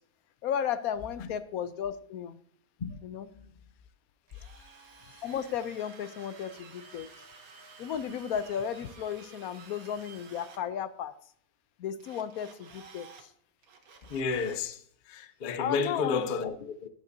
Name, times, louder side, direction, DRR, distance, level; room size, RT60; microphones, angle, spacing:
voice 1, 0.4-2.4 3.0-3.3 5.2-7.1 7.8-11.1 11.8-13.3 15.6-16.3, left 8 dB, 75° left, 1.0 m, -34 dB
Drill, 4.3-10.6 12.0-13.2 13.6-14.7, right 5 dB, 65° right, 1.6 m, -52 dB
voice 2, 14.1-16.9, left 5 dB, 50° left, 0.6 m, -32 dB
11.5 x 10.5 x 2.7 m
omnidirectional pair, 1.6 m